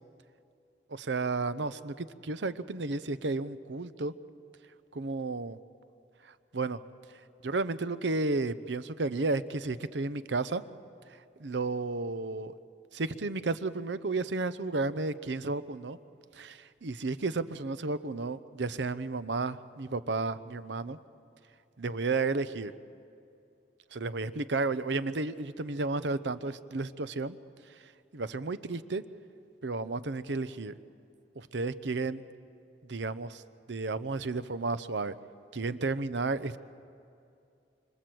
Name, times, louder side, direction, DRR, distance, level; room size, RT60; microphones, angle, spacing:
voice 1, 0.9-4.1 4.9-5.6 6.5-6.8 7.4-10.6 11.4-12.5 12.9-16.0 16.3-21.0 21.8-22.7 23.9-27.4 28.1-29.0 29.6-30.7 31.4-32.2 32.9-33.4 33.7-35.1 35.5-36.6, right 3 dB, 85° right, 14 dB, 0.8 m, -32 dB
27.0 x 25.5 x 7.8 m, 2.5 s
head